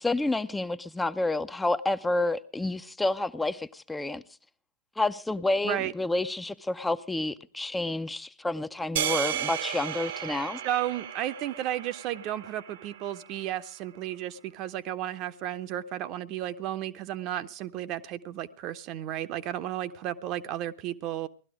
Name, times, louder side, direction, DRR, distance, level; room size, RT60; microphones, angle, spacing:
voice 1, 0.0-4.2 5.0-10.6, left 2 dB, 10° left, 10 dB, 0.6 m, -29 dB
sound 1, 9.0-13.3, right 9 dB, 60° right, 1.2 m, -34 dB
voice 2, 10.6-21.3, right 12 dB, 40° right, 12 dB, 0.9 m, -33 dB
18.0 x 12.5 x 4.9 m, 0.38 s
figure-of-eight pair, 95°, 0 cm